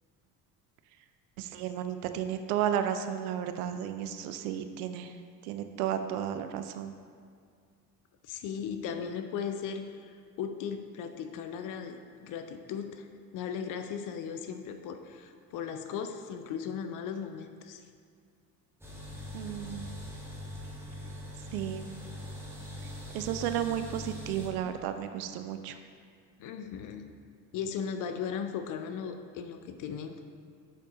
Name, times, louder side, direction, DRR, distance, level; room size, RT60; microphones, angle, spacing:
voice 1, 1.4-7.0 19.3-19.9 21.5-21.9 23.1-25.8, right 10 dB, 65° right, 8 dB, 0.5 m, -33 dB
voice 2, 8.2-13.1 13.3-17.8 26.4-27.1 27.5-30.2, left 7 dB, 40° left, 7 dB, 0.5 m, -37 dB
sound 1, 18.8-24.5, left 1 dB, 5° right, 1.3 m, -42 dB
7.1 x 4.5 x 3.9 m, 2.2 s
figure-of-eight pair, 55°, 50 cm